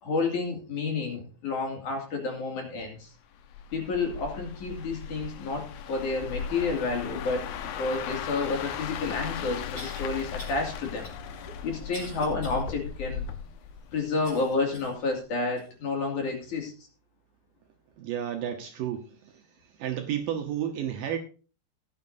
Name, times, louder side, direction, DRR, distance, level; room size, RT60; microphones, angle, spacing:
voice 1, 0.0-3.1 3.7-7.5 7.7-11.1 11.6-13.3 13.9-16.7, left 3 dB, 50° left, 1 dB, 3.5 m, -30 dB
sound 1, 3.4-14.5 14.8-15.1, left 7 dB, 75° left, 2.5 m, -37 dB
sound 2, 9.8-10.0 10.4-10.6 11.0-12.6 13.1-13.2 14.2-15.0 15.6-15.7 16.4-16.5, left 1 dB, 15° left, 2.6 m, -45 dB
voice 2, 18.0-19.1 19.8-21.2, right 10 dB, 70° right, 4 dB, 2.3 m, -31 dB
16.5 x 9.6 x 2.7 m, 0.36 s
omnidirectional pair, 4.7 m